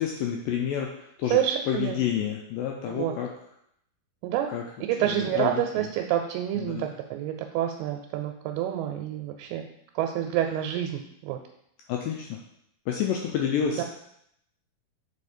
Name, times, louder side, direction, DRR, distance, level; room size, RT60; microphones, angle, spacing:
voice 1, 0.0-1.4 1.7-3.3 4.5-4.6 5.0-5.9 6.6-6.9 11.9-12.4 12.9-13.8, left 9 dB, 85° left, 0 dB, 2.0 m, -29 dB
voice 2, 1.2-2.0 2.9-3.1 4.2-4.5 4.9-9.7 10.0-11.4 13.8-13.9, right 11 dB, 85° right, 4 dB, 2.5 m, -28 dB
4.9 x 4.6 x 4.2 m, 0.76 s
omnidirectional pair, 4.5 m